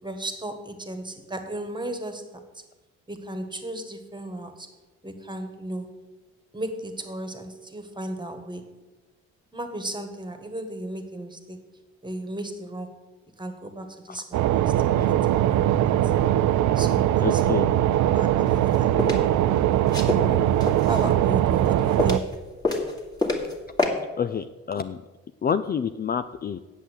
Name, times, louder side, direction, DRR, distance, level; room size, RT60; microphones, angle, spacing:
voice 1, 0.0-2.6 3.1-4.7 5.0-6.0 6.5-8.7 9.5-11.6 12.0-13.0 13.4-16.1 16.7-17.4 18.1-20.5 20.9-22.3, right 1 dB, 15° right, 7 dB, 1.6 m, -35 dB
sound 1, 14.3-22.2, right 12 dB, 70° right, 0.5 m, -21 dB
voice 2, 17.2-17.7 24.2-25.0 25.4-26.6, left 7 dB, 30° left, 11 dB, 0.4 m, -28 dB
sound 2, 18.5-19.2 19.9-21.1 21.5-22.4 22.6-23.5 23.8-23.9, left 3 dB, 15° left, 2.0 m, -27 dB
8.4 x 7.3 x 8.2 m, 1.2 s
cardioid pair, 90°, 30 cm